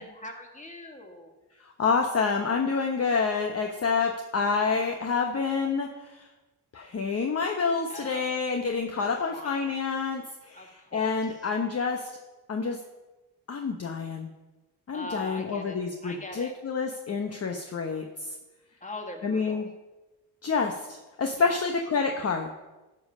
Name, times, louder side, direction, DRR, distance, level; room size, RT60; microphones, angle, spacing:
voice 1, 0.0-1.4 4.4-5.0 7.9-8.6 9.0-9.7 10.5-11.5 14.9-16.5 18.8-19.6 21.4-21.6, left 2 dB, 20° left, 2 dB, 1.9 m, -42 dB
voice 2, 1.6-6.3 6.7-12.1 12.5-12.8 13.5-14.3 14.9-18.3 19.2-19.7 20.4-22.6, left 5 dB, 35° left, 3 dB, 1.0 m, -28 dB
11.5 x 5.4 x 5.5 m, 1.1 s
cardioid pair, 75°, 40 cm